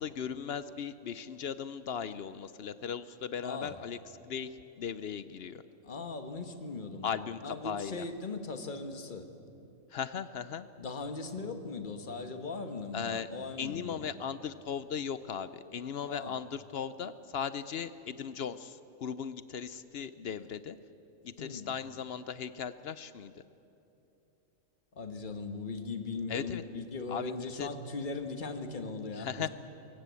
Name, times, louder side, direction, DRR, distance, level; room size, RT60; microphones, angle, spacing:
voice 1, 0.0-4.0 4.3-5.6 7.0-8.0 9.9-10.7 12.9-13.3 13.6-20.8 21.2-23.3 26.3-26.6 27.1-27.7 29.2-29.5, left 7 dB, 60° left, 14 dB, 0.7 m, -37 dB
voice 2, 3.4-3.8 5.8-7.1 7.4-9.3 10.8-14.1 16.0-16.4 21.4-21.7 24.9-29.5, left 3 dB, 40° left, 7 dB, 1.4 m, -39 dB
22.5 x 17.0 x 8.3 m, 2.9 s
omnidirectional pair, 1.4 m